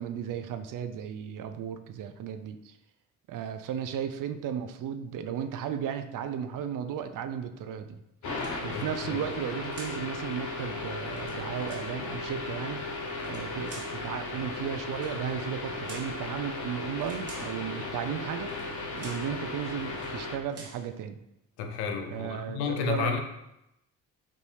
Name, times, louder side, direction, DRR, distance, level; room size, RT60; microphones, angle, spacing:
voice 1, 0.0-2.7 3.3-8.0 8.6-12.8 13.2-18.5 18.9-21.2 22.1-23.2, right 8 dB, 60° right, 9 dB, 0.5 m, -35 dB
sound 1, 8.2-20.4, left 3 dB, 50° left, 1.0 m, -36 dB
sound 2, 8.3-8.9 9.7-10.1 11.0-11.9 13.1-14.0 14.9-15.2 15.8-16.2 17.0-17.6 18.5-18.7 19.0-19.3 19.9-20.2 20.5-20.9, right 3 dB, 40° right, 1.0 m, -48 dB
voice 2, 8.7-9.2 21.6-23.2, left 6 dB, 85° left, 4 dB, 0.7 m, -32 dB
5.3 x 2.6 x 3.2 m, 0.87 s
supercardioid pair, 55°, 37 cm